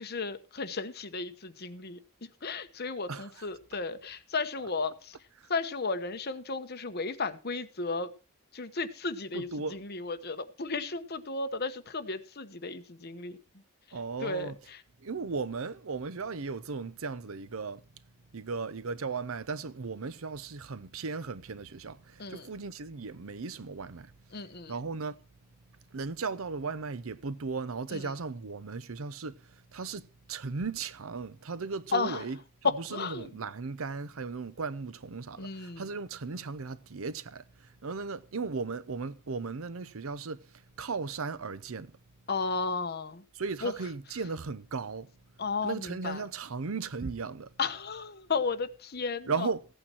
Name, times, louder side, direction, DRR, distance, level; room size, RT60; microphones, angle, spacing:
voice 1, 0.0-2.0 2.4-5.1 5.5-8.1 8.5-13.4 14.2-14.8 22.2-22.5 24.3-24.7 27.9-28.1 31.9-32.2 32.6-33.3 35.4-35.9 42.3-43.2 43.6-43.7 45.4-46.2 47.6-49.5, left 4 dB, 50° left, 1.1 m, -34 dB
voice 2, 3.1-3.5 4.6-4.7 5.4-5.5 9.3-9.8 13.9-14.6 15.0-17.8 18.3-24.1 24.7-25.2 25.9-29.3 29.7-40.4 40.8-41.9 43.3-45.1 45.6-47.5 49.2-49.7, right 4 dB, 70° right, 0.7 m, -36 dB
15.5 x 8.7 x 4.4 m
head